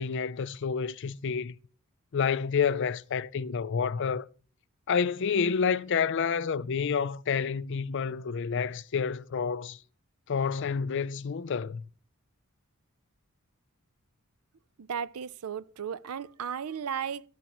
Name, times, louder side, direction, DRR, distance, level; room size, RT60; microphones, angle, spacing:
voice 1, 0.0-1.5 2.1-4.3 4.9-9.8 10.3-11.8, left 6 dB, 55° left, 0.4 m, -29 dB
voice 2, 14.8-17.2, right 7 dB, 90° right, 0.5 m, -35 dB
13.5 x 11.0 x 3.0 m
head